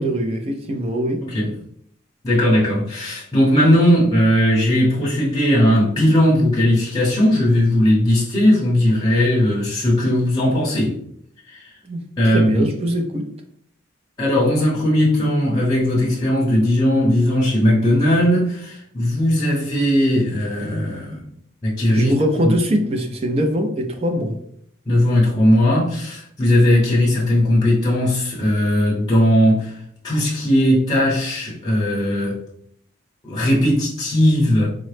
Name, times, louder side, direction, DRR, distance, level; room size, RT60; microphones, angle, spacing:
voice 1, 0.0-1.3 11.8-13.3 21.9-24.4, equal, 30° right, 3 dB, 0.4 m, -22 dB
voice 2, 1.2-1.5 2.2-11.0 11.5-11.7 12.2-12.7 14.2-21.2 21.6-22.1 22.4-22.5 24.9-29.7 30.0-32.4 33.2-34.7, equal, 20° left, -6 dB, 0.7 m, -18 dB
3.6 x 2.0 x 3.2 m, 0.66 s
head